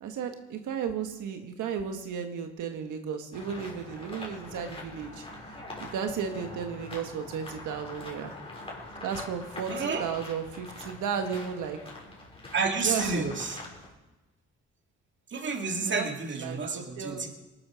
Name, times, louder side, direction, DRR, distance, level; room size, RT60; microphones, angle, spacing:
voice 1, 0.0-8.3 9.0-11.8 12.8-13.3 15.8-16.1 16.4-17.3, right 7 dB, 80° right, 5 dB, 1.5 m, -34 dB
sound 1, 3.3-13.9, left 2 dB, 20° left, 4.6 m, -43 dB
voice 2, 9.7-10.1 12.5-13.6 15.3-17.3, right 4 dB, 40° right, 3 dB, 2.4 m, -30 dB
20.0 x 8.8 x 6.3 m, 1.1 s
cardioid pair, 90°, 30 cm